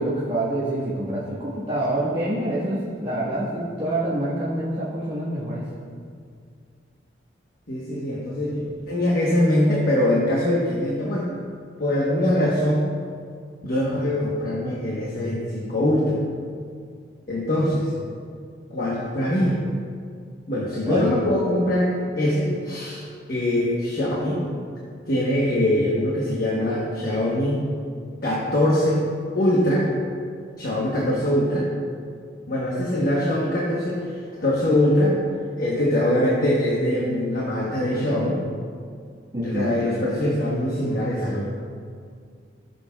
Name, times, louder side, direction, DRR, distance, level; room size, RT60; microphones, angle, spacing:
voice 1, 0.0-5.6 20.9-21.0 39.3-39.8, right 1 dB, 30° right, -10 dB, 1.5 m, -26 dB
voice 2, 7.7-11.3 11.8-12.9 13.6-16.2 17.3-17.9 18.7-19.6 20.5-24.4 25.1-27.6 28.2-29.1 29.3-29.9 30.6-31.7 32.5-35.2 35.6-38.4 39.4-41.5, left 1 dB, 50° left, -5 dB, 1.2 m, -23 dB
16.0 x 6.8 x 2.3 m, 2.2 s
head